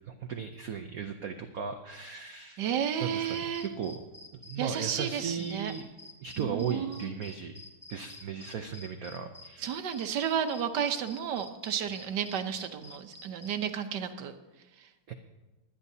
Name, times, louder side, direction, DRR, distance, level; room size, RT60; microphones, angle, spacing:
voice 1, 0.1-2.6 3.0-3.3 3.6-4.0 4.3-5.9 6.2-7.6 7.9-9.7 15.1-15.2, right 7 dB, 85° right, 6 dB, 0.7 m, -36 dB
voice 2, 2.6-3.6 4.6-5.7 6.4-7.1 9.6-14.3, right 8 dB, 60° right, 8 dB, 1.3 m, -32 dB
sound 1, 3.3-13.6, left 2 dB, 10° left, 1.3 m, -49 dB
24.0 x 10.0 x 2.7 m, 1.1 s
omnidirectional pair, 2.4 m